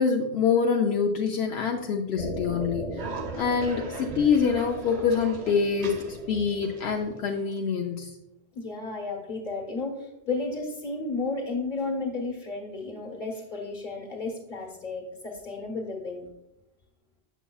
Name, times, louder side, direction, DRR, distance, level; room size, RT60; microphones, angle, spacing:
voice 1, 0.0-3.0 3.3-8.1, left 6 dB, 80° left, 1 dB, 0.8 m, -25 dB
sound 1, 2.2-7.2, right 2 dB, 45° right, 0.8 m, -38 dB
Cough, 3.0-8.0, right 4 dB, 80° right, 1.1 m, -42 dB
voice 2, 8.5-16.3, left 3 dB, 50° left, 1 dB, 1.4 m, -33 dB
7.1 x 7.0 x 2.3 m, 0.87 s
omnidirectional pair, 1.1 m